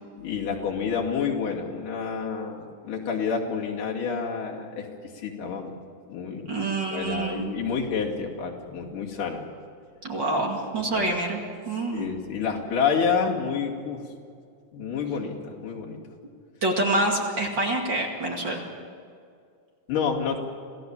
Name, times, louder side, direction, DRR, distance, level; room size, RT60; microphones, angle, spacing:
voice 1, 0.2-4.9 5.1-5.8 6.1-9.4 10.7-11.1 11.9-14.0 14.7-16.0 19.9-20.4, left 6 dB, 85° left, -2 dB, 4.2 m, -29 dB
voice 2, 6.4-7.5 10.0-11.4 11.7-12.1 16.6-18.6, right 2 dB, 40° right, 1 dB, 2.6 m, -26 dB
27.0 x 16.5 x 7.4 m, 2.3 s
omnidirectional pair, 3.6 m